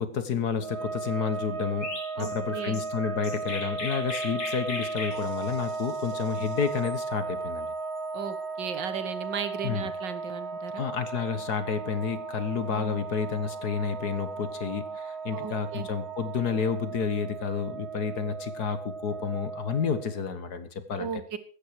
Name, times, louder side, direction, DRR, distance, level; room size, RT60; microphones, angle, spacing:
voice 1, 0.0-7.7 9.6-9.9 10.8-21.2, left 6 dB, 60° left, 11 dB, 1.9 m, -30 dB
sound 1, 0.6-20.2, right 3 dB, 55° right, 2.0 m, -36 dB
Chirp tweet, 1.8-6.9, left 3 dB, 80° left, 3.8 m, -38 dB
voice 2, 2.2-2.8 8.1-10.9 12.7-13.0 15.3-15.9 21.0-21.4, right 7 dB, 75° right, 11 dB, 2.0 m, -36 dB
sound 2, 5.1-17.3, right 9 dB, 35° right, 6.5 m, -46 dB
16.0 x 12.0 x 4.7 m, 0.40 s
omnidirectional pair, 2.0 m